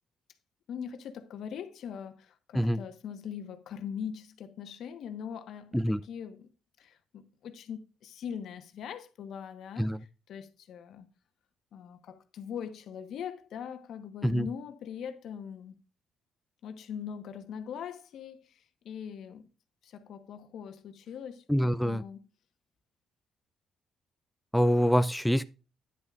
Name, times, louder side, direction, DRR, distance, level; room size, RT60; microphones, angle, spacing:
voice 1, 0.7-6.5 6.8-9.9 10.3-11.0 11.7-15.7 16.6-19.4 19.8-22.2, left 8 dB, 75° left, 1.2 m, -41 dB
voice 2, 21.5-22.0 24.5-25.4, equal, 5° left, 0.4 m, -25 dB
10.0 x 9.1 x 2.5 m
cardioid pair, 90°, 0 cm